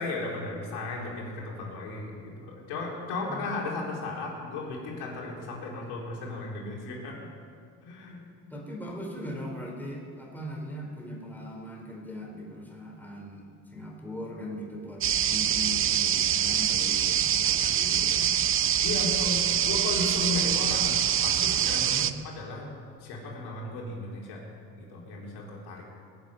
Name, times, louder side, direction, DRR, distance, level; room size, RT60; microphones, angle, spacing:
voice 1, 0.0-7.2 7.8-8.2 18.8-22.1 22.4-22.7 23.0-24.4 24.8-25.9, left 3 dB, 75° left, -2 dB, 4.1 m, -35 dB
voice 2, 8.4-18.3 19.6-19.8 21.9-22.1, equal, 5° left, -1 dB, 4.2 m, -40 dB
sound 1, 15.0-22.1, right 9 dB, 35° right, 0.6 m, -25 dB
19.5 x 7.8 x 9.4 m, 2.3 s
supercardioid pair, 105°, 39 cm